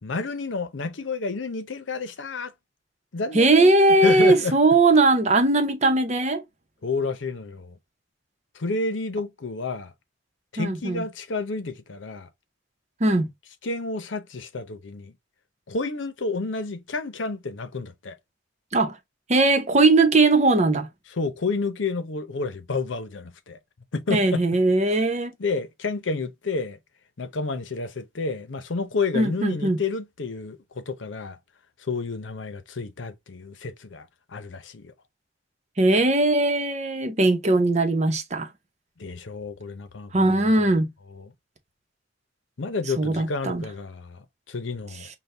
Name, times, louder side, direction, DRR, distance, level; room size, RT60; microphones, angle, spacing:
voice 1, 0.0-2.5 3.1-3.7 4.0-4.6 6.8-7.7 8.5-9.9 10.5-12.3 13.6-15.1 15.7-18.2 21.1-23.6 23.9-24.4 25.4-26.8 27.2-31.4 31.8-34.9 39.0-40.7 41.1-41.3 42.6-45.1, left 3 dB, 90° left, 0.7 m, -30 dB
voice 2, 3.3-6.4 10.6-11.0 13.0-13.3 18.7-19.0 19.3-20.9 24.1-25.3 29.1-29.8 35.8-38.5 40.1-40.9 43.0-43.6, right 2 dB, 40° right, 0.8 m, -19 dB
5.6 x 2.3 x 3.3 m
head